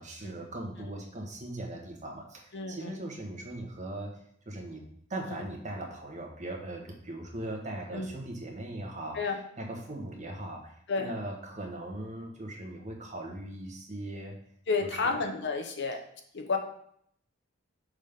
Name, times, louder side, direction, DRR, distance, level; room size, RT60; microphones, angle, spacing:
voice 1, 0.0-14.3 14.8-15.2, right 1 dB, 40° right, 0 dB, 1.4 m, -40 dB
voice 2, 2.5-2.9 7.9-8.1 9.2-9.4 10.9-11.1 14.7-16.0 16.3-16.6, left 4 dB, 60° left, 4 dB, 0.8 m, -30 dB
6.4 x 3.7 x 5.1 m, 0.67 s
head